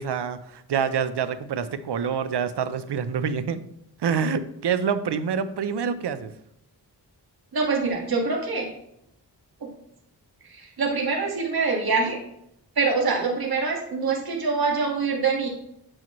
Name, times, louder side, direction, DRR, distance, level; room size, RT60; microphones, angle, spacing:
voice 1, 0.0-3.6 4.0-6.3, right 6 dB, 75° right, 12 dB, 0.7 m, -26 dB
voice 2, 7.5-8.7 9.6-9.7 10.5-12.2 12.7-15.5, right 4 dB, 60° right, -1 dB, 1.6 m, -25 dB
8.8 x 5.9 x 3.0 m, 0.78 s
wide cardioid pair, 75°, 41 cm